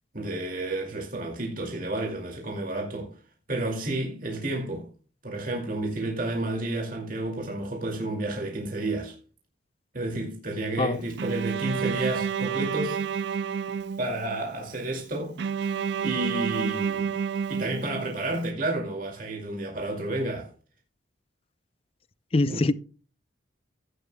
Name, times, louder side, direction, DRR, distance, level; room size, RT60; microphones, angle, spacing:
voice 1, 0.1-3.2 3.5-4.9 5.2-9.2 9.9-13.0 14.0-15.4 16.0-17.1 17.5-20.5 22.5-22.7, right 2 dB, 45° right, 2.3 m, -31 dB
Bowed string instrument, 11.2-14.4 15.4-18.3, right 7 dB, 60° right, 0.4 m, -29 dB
voice 2, 22.3-22.7, left 2 dB, 30° left, 0.4 m, -23 dB
15.5 x 9.6 x 2.2 m
head